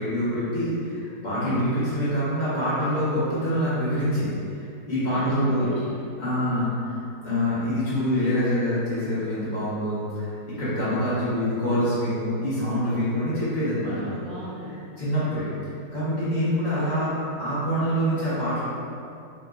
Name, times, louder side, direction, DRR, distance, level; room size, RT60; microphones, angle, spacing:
voice 1, 0.0-5.7 6.2-7.0 7.2-14.2 15.0-15.5 15.9-18.6, equal, 35° left, -12 dB, 0.7 m, -25 dB
voice 2, 4.8-6.5 13.7-14.8, equal, 65° right, -10 dB, 1.1 m, -39 dB
3.0 x 2.2 x 3.5 m, 2.5 s
omnidirectional pair, 1.9 m